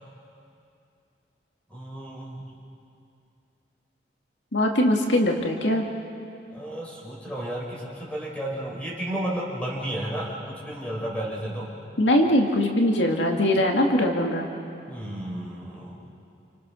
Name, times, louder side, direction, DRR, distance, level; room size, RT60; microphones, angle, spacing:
voice 1, 1.7-2.4 6.5-11.7 14.8-16.0, right 1 dB, 5° left, -3 dB, 5.5 m, -32 dB
voice 2, 4.5-5.8 12.0-14.5, left 1 dB, 85° left, 1 dB, 2.2 m, -21 dB
30.0 x 28.0 x 6.3 m, 2.6 s
head